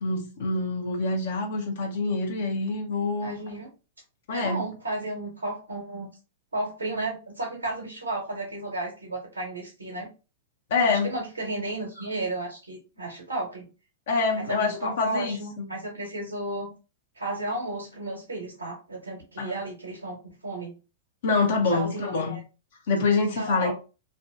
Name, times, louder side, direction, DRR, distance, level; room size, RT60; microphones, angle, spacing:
voice 1, 0.0-3.5 4.3-4.6 10.7-11.1 14.1-15.7 19.4-19.6 21.2-22.4 22.9-23.7, left 3 dB, 65° left, 0.6 m, -26 dB
voice 2, 3.0-3.7 4.3-6.1 6.5-10.1 10.8-13.7 14.4-16.7 17.2-20.7 21.7-22.3 23.4-23.7, right 2 dB, 90° right, 0.8 m, -33 dB
2.5 x 2.2 x 2.5 m
hypercardioid pair, 105°, 0 cm